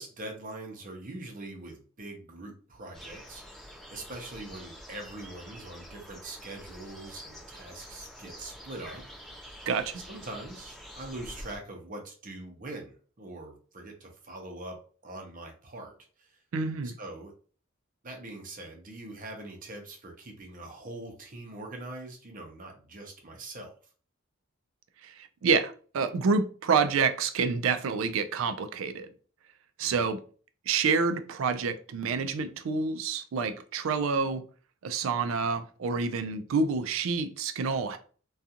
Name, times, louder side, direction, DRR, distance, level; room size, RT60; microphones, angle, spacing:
voice 1, 0.0-9.5 10.1-14.8 15.0-15.9 16.2-16.4 17.0-17.3 18.0-23.7 29.8-30.1, right 2 dB, 40° right, 0.6 m, -43 dB
sound 1, 2.9-11.6, equal, ahead, 0.7 m, -47 dB
voice 2, 9.7-10.0 16.5-16.9 25.0-29.1 29.8-30.2 30.7-34.4 34.8-38.0, right 5 dB, 75° right, 0.4 m, -28 dB
2.4 x 2.3 x 2.7 m
head